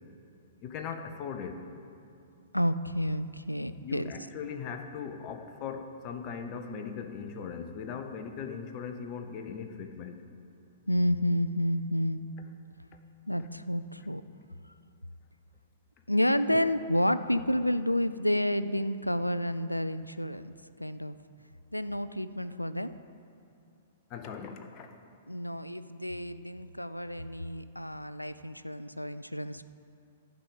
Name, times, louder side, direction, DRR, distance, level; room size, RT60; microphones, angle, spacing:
voice 1, 0.6-1.6 3.8-10.2 16.5-16.6 24.1-24.9, left 6 dB, 35° left, 6 dB, 0.8 m, -39 dB
voice 2, 2.5-4.1 10.9-12.2 13.3-14.3 16.1-20.5 20.8-21.2 21.7-23.0 25.3-29.6, equal, 90° left, 13 dB, 0.3 m, -30 dB
11.5 x 4.8 x 7.5 m, 2.5 s
figure-of-eight pair, 110°, 0 cm